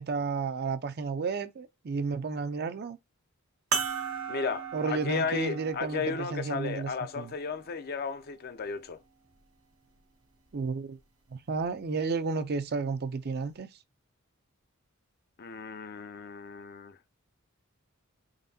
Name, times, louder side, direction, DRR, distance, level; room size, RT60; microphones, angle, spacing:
voice 1, 0.0-3.0 4.7-7.3 10.5-11.0 11.3-13.7, right 4 dB, 50° right, 0.5 m, -32 dB
sound 1, 3.7-8.5 9.3-9.4 11.5-11.7, right 6 dB, 85° right, 0.9 m, -37 dB
voice 2, 4.3-9.0 15.4-17.0, left 5 dB, 45° left, 0.5 m, -34 dB
3.9 x 3.4 x 2.7 m
head